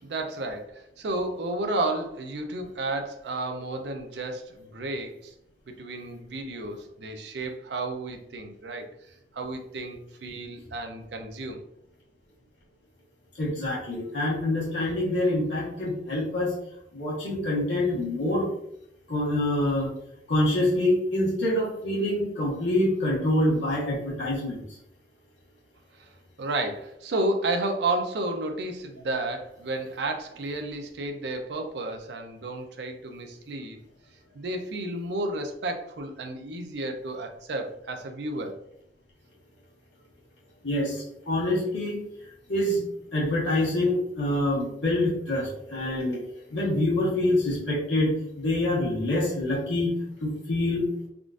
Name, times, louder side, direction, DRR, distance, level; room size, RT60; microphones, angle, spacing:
voice 1, 0.0-5.3 5.7-11.6 26.0-26.1 26.4-33.8 34.3-38.5, right 2 dB, 65° right, 5 dB, 0.5 m, -32 dB
voice 2, 13.4-16.6 16.9-18.5 19.1-19.9 20.3-24.6 40.6-42.0 42.5-42.8 43.1-46.2 46.5-49.9 50.2-50.8, left 1 dB, 80° left, -5 dB, 1.2 m, -26 dB
3.6 x 2.4 x 2.4 m, 0.75 s
head